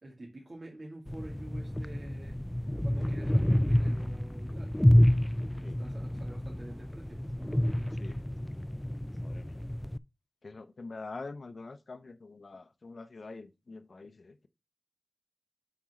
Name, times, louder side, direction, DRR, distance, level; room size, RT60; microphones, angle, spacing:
voice 1, 0.0-4.8 5.5-8.0, right 2 dB, 60° right, 2.2 m, -48 dB
sound 1, 1.1-10.0, left 1 dB, 10° left, 0.3 m, -28 dB
voice 2, 9.2-9.6 10.4-14.5, left 3 dB, 75° left, 0.6 m, -45 dB
5.9 x 4.2 x 6.1 m
wide cardioid pair, 50°, 0 cm